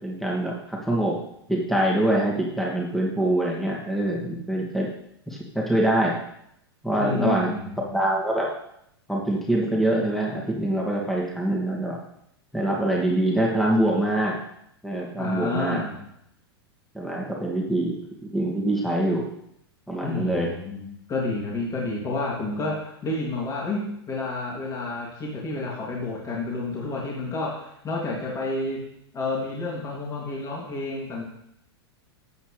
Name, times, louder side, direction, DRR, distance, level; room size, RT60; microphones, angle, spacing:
voice 1, 0.0-1.2 1.5-4.9 5.3-6.2 6.8-7.5 7.9-8.5 9.1-12.0 12.5-14.4 14.8-15.8 16.9-19.3 19.9-20.5, right 1 dB, ahead, -2 dB, 2.4 m, -24 dB
voice 2, 7.0-7.9 15.2-16.0 20.0-28.8 29.1-31.2, left 2 dB, 25° left, -3 dB, 2.7 m, -30 dB
13.0 x 8.6 x 3.4 m, 0.76 s
hypercardioid pair, 110°, 13 cm